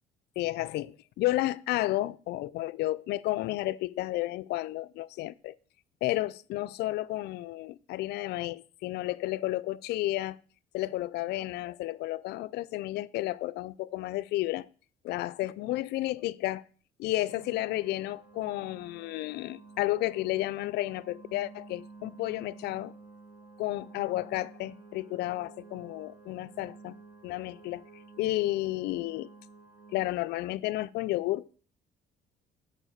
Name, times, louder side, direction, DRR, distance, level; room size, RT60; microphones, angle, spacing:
voice 1, 0.4-5.6 6.0-10.4 10.7-14.7 15.0-16.6 17.0-22.9 23.6-27.0 27.2-29.3 29.9-31.6, left 17 dB, 75° left, 0.4 m, -32 dB
sound 1, 17.3-30.0, right 4 dB, 20° right, 3.9 m, -52 dB
7.4 x 4.9 x 6.5 m
cardioid pair, 110°, 17 cm